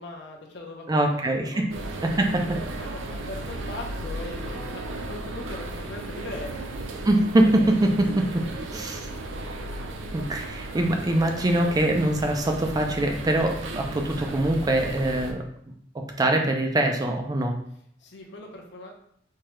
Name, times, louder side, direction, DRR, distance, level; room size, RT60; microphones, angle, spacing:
voice 1, 0.0-1.6 2.4-6.6 18.0-18.9, left 2 dB, 65° left, 1 dB, 0.8 m, -40 dB
voice 2, 0.9-1.7 2.0-2.6 7.0-8.5 8.7-9.1 10.1-15.4 16.2-17.5, right 1 dB, 20° right, 2 dB, 0.4 m, -23 dB
sound 1, 1.7-15.3, right 2 dB, 90° right, 0.5 m, -35 dB
4.5 x 2.3 x 3.0 m, 0.67 s
head